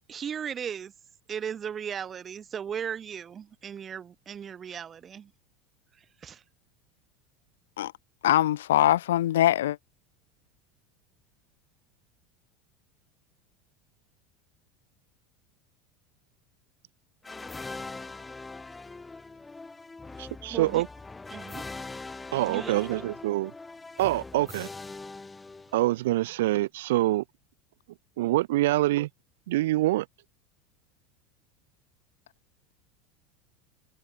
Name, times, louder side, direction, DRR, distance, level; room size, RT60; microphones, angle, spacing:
voice 1, 0.1-0.9 1.3-5.3 6.0-6.4 20.5-20.8 21.3-21.6 22.5-23.1, right 8 dB, 30° right, 0.7 m, -37 dB
voice 2, 8.2-9.8, left 13 dB, 80° left, 0.4 m, -22 dB
sound 1, 17.2-26.1, left 3 dB, 15° left, 0.5 m, -42 dB
voice 3, 20.2-20.9 22.3-23.5 24.0-24.7 25.7-27.2 28.2-29.1 29.5-30.1, right 17 dB, 75° right, 0.4 m, -25 dB
hypercardioid pair, 90°, 0 cm